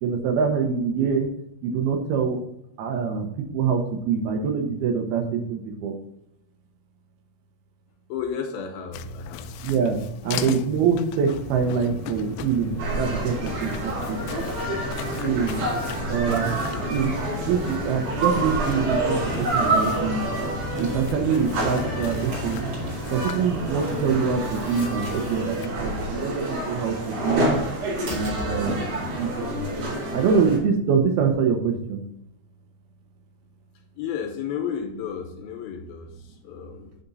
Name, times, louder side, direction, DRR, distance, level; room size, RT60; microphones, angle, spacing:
voice 1, 0.0-1.3 1.6-2.4 2.8-3.3 3.5-5.9 9.6-14.2 15.2-15.6 16.1-16.6 16.9-17.1 17.5-20.2 20.8-22.7 23.1-27.5 28.1-28.8 29.1-29.3 30.1-32.0, right 6 dB, 75° right, 4 dB, 2.7 m, -25 dB
voice 2, 8.1-9.5 34.0-37.0, left 7 dB, 75° left, 4 dB, 2.5 m, -32 dB
sound 1, 8.9-25.7, left 8 dB, 90° left, 2.8 m, -39 dB
sound 2, 11.3-29.4, left 1 dB, 30° right, 2.1 m, -36 dB
sound 3, 12.8-30.6, right 2 dB, 60° right, 5.1 m, -28 dB
11.0 x 4.4 x 4.0 m, 0.80 s
omnidirectional pair, 4.9 m